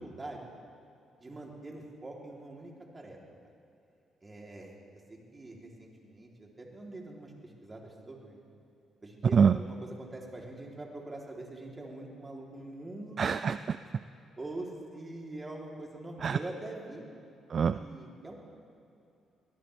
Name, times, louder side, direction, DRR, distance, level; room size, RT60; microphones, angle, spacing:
voice 1, 0.0-0.4 1.2-3.2 4.2-4.7 5.1-8.4 9.0-13.2 13.8-13.9 14.4-17.0 17.7-18.3, right 2 dB, 25° right, -2 dB, 3.3 m, -44 dB
voice 2, 13.2-13.8 16.2-16.4 17.5-17.8, right 6 dB, 50° right, 12 dB, 0.4 m, -25 dB
24.5 x 17.5 x 3.4 m, 2.7 s
cardioid pair, 90°, 0 cm